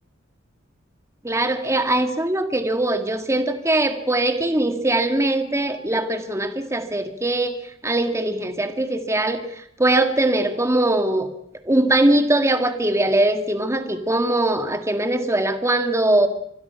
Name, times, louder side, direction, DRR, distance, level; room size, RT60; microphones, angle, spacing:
voice 1, 1.2-7.6 7.8-11.3 11.7-16.3, right 1 dB, 15° right, 7 dB, 1.9 m, -21 dB
26.5 x 21.5 x 5.8 m, 0.73 s
head